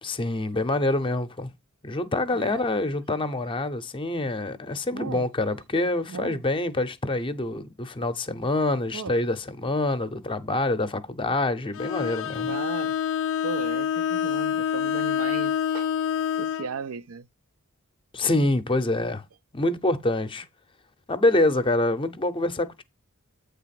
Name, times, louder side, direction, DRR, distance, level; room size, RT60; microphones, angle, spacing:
voice 1, 0.0-1.5 1.8-12.5 18.1-19.2 19.5-20.5 21.1-22.8, left 2 dB, 25° left, 0.6 m, -26 dB
voice 2, 4.9-5.3 6.1-6.4 8.9-9.1 10.5-10.6 12.5-13.0 13.4-15.9 16.4-17.3, right 5 dB, 75° right, 0.5 m, -36 dB
Bowed string instrument, 11.7-16.7, left 8 dB, 60° left, 0.4 m, -27 dB
8.4 x 3.5 x 5.8 m
head